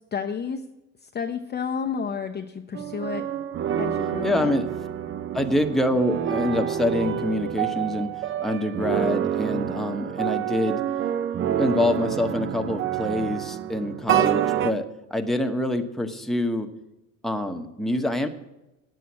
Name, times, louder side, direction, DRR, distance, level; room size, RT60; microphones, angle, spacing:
voice 1, 0.1-0.6 1.1-3.3 3.8-4.5, left 6 dB, 25° left, 3 dB, 0.7 m, -30 dB
sound 1, 2.7-14.7, right 10 dB, 30° right, 0.5 m, -27 dB
voice 2, 4.2-4.7 5.3-8.1 8.4-10.8 11.6-14.8 15.1-16.7 17.2-18.3, left 1 dB, ahead, 4 dB, 1.0 m, -25 dB
9.3 x 7.8 x 8.3 m, 0.96 s
supercardioid pair, 95°, 42 cm